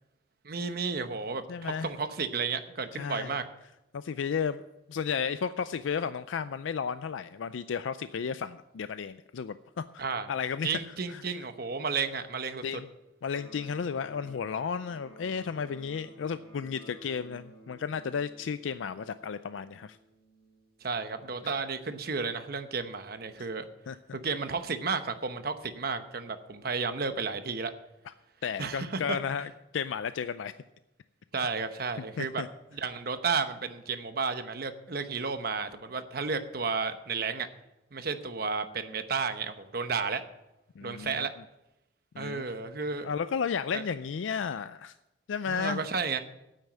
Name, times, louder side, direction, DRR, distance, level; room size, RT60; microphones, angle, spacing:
voice 1, 0.4-3.4 10.0-10.3 10.6-12.6 20.8-23.7 24.1-27.7 28.6-29.2 31.3-32.4 32.7-37.5 37.9-40.2 40.8-41.3 42.2-43.1 43.7-43.8 45.5-46.2, right 5 dB, 55° right, 9 dB, 0.9 m, -32 dB
voice 2, 1.5-1.9 2.9-3.3 3.9-4.6 4.9-10.7 11.1-11.2 12.6-12.9 13.2-20.0 23.4-23.5 23.9-24.0 28.4-30.5 32.2-32.5 40.8-41.3 42.1-42.4 43.0-44.9 45.3-45.8, left 6 dB, 90° left, 13 dB, 0.4 m, -33 dB
Electric guitar, 13.3-21.3, equal, 15° left, 5.4 m, -54 dB
9.1 x 9.0 x 7.5 m, 0.92 s
head